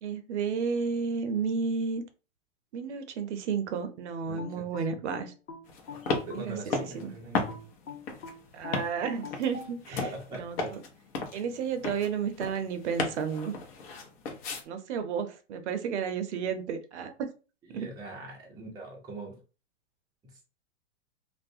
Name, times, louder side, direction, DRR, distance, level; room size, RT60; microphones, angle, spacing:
voice 1, 0.0-2.0 2.7-5.3 6.3-6.6 6.9-7.1 8.5-10.1 10.3-10.8 11.3-13.5 14.7-17.3 17.7-17.9, right 6 dB, 65° right, 8 dB, 0.6 m, -32 dB
voice 2, 4.3-5.0 5.9-7.6 10.0-10.7 17.6-19.4, right 2 dB, 10° right, -2 dB, 0.5 m, -42 dB
sound 1, 4.4-7.0 7.5-10.2, left 4 dB, 80° left, 0.8 m, -43 dB
sound 2, 5.7-14.6, left 3 dB, 50° left, 0.8 m, -36 dB
2.3 x 2.1 x 2.6 m, 0.33 s
hypercardioid pair, 125°, 38 cm